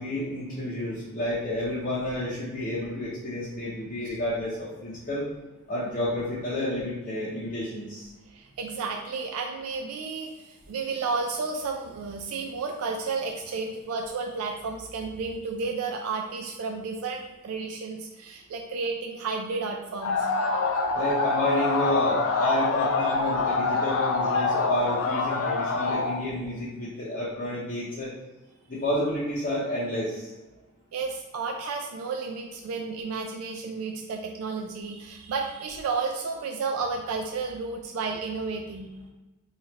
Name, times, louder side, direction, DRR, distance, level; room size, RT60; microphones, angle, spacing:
voice 1, 0.0-5.3 5.7-8.1 20.9-28.1 28.7-30.3, left 1 dB, 40° left, -8 dB, 0.6 m, -30 dB
voice 2, 8.3-20.3 30.9-38.9, right 4 dB, 90° right, 2 dB, 0.3 m, -32 dB
sound 1, 20.0-26.2, left 3 dB, 85° left, 0.4 m, -25 dB
3.0 x 2.4 x 4.0 m, 1.1 s
head